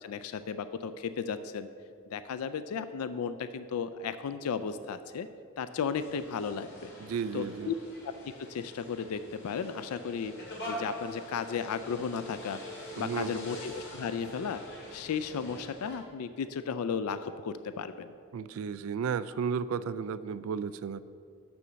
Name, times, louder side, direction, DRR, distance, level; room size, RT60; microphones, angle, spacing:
voice 1, 0.0-1.7 2.1-5.3 5.6-6.9 7.3-7.7 8.0-10.3 10.7-12.6 13.0-14.6 14.9-18.1, left 6 dB, 85° left, 12 dB, 0.4 m, -34 dB
sound 1, 5.9-16.0, equal, 55° left, 2.1 m, -44 dB
voice 2, 7.0-7.7 13.0-13.4 18.3-21.0, right 6 dB, 70° right, 16 dB, 0.3 m, -33 dB
6.9 x 6.2 x 6.8 m, 2.4 s
head